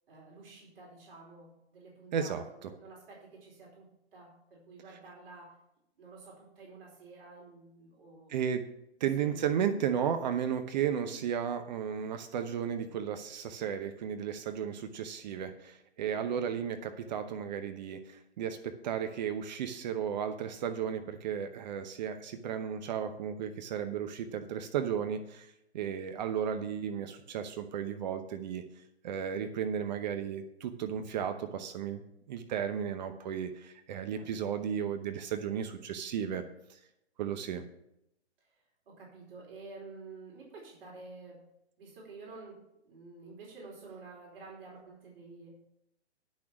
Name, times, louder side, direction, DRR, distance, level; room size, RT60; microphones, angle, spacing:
voice 1, 0.1-5.6 6.0-8.4 9.2-9.4 16.1-16.5 34.1-34.3 38.5-38.6 38.9-41.4 41.8-45.5, right 3 dB, 55° right, -2 dB, 4.6 m, -50 dB
voice 2, 2.1-2.4 8.3-8.7 9.0-25.5 25.7-28.6 29.0-32.0 32.3-36.4 36.7-36.8 37.2-37.6, right 8 dB, 40° right, 8 dB, 0.9 m, -34 dB
10.5 x 6.4 x 6.1 m, 0.81 s
hypercardioid pair, 135°, 33 cm